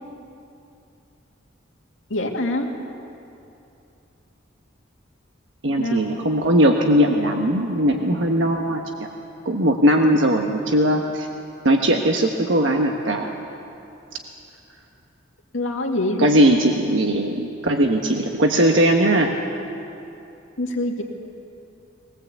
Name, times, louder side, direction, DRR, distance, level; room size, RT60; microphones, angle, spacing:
voice 1, 2.1-2.7 5.8-6.0 15.5-16.4 20.6-21.0, left 1 dB, 75° left, 2 dB, 2.2 m, -24 dB
voice 2, 5.6-9.1 9.4-11.3 11.6-13.4 16.2-19.3, right 1 dB, 65° right, 2 dB, 1.3 m, -19 dB
21.5 x 18.5 x 8.3 m, 2.8 s
head